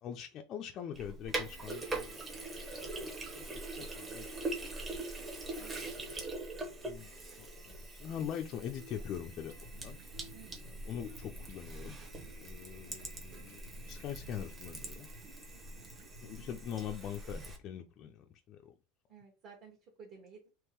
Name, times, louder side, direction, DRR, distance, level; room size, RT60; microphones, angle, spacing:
voice 1, 0.0-2.5 2.8-5.0 5.2-5.4 5.8-6.0 6.8-7.1 7.4-10.0 10.6-12.0 12.4-15.1 16.2-18.7, left 9 dB, 35° left, 0.4 m, -43 dB
sound 1, 0.8-11.7 12.0-13.6, right 2 dB, 80° right, 1.3 m, -64 dB
Sink (filling or washing), 0.9-17.6, right 2 dB, 15° right, 0.9 m, -43 dB
voice 2, 5.6-6.1 10.3-10.8 12.9-13.0 15.5-15.9 19.1-20.5, right 6 dB, 35° right, 1.1 m, -56 dB
sound 2, 9.0-16.6, right 1 dB, 60° right, 1.3 m, -57 dB
3.6 x 3.0 x 4.4 m
supercardioid pair, 160°, 0 cm